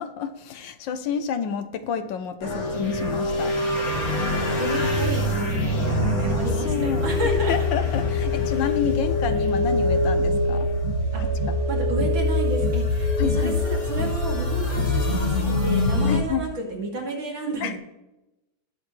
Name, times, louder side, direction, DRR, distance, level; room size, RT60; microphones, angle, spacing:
voice 1, 0.0-3.5 6.6-7.0 7.5-10.7 11.2-11.6 13.2-13.5 16.1-16.4 17.6-17.8, left 7 dB, 70° left, 10 dB, 1.3 m, -29 dB
sound 1, 2.4-16.2, left 2 dB, 45° left, 2.3 m, -24 dB
voice 2, 4.6-7.5 11.1-11.2 11.7-17.8, right 2 dB, 70° right, -1 dB, 3.2 m, -31 dB
18.5 x 6.7 x 3.2 m, 0.97 s
omnidirectional pair, 2.2 m